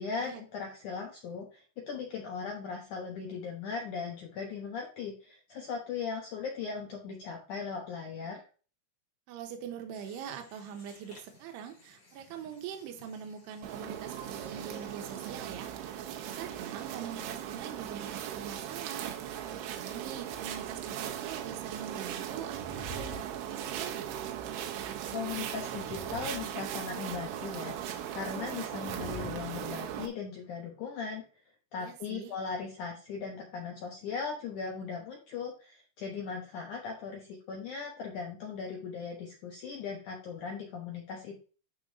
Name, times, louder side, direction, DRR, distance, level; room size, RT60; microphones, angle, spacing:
voice 1, 0.0-8.4 25.1-31.2 31.7-41.4, left 5 dB, 80° left, 0 dB, 1.7 m, -38 dB
voice 2, 9.3-24.1 31.8-32.3, right 8 dB, 75° right, 4 dB, 3.0 m, -43 dB
sound 1, 9.9-15.4, left 2 dB, 30° left, 3.9 m, -57 dB
sound 2, 13.6-30.1, right 10 dB, 90° right, 3.3 m, -38 dB
sound 3, 22.4-24.0 25.5-27.1 28.7-30.0, equal, 5° left, 2.7 m, -46 dB
11.5 x 5.3 x 2.7 m, 0.37 s
omnidirectional pair, 5.2 m